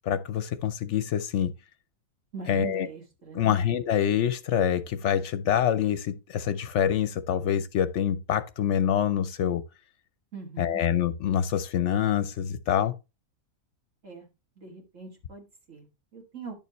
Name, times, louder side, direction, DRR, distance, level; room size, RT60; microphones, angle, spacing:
voice 1, 0.0-1.5 2.5-2.9 3.3-9.6 10.6-12.9, left 9 dB, 65° left, 0.8 m, -26 dB
voice 2, 2.3-3.6 10.3-10.8 14.0-14.3 14.6-16.5, right 4 dB, 65° right, 2.6 m, -41 dB
10.5 x 6.8 x 3.0 m
omnidirectional pair, 1.4 m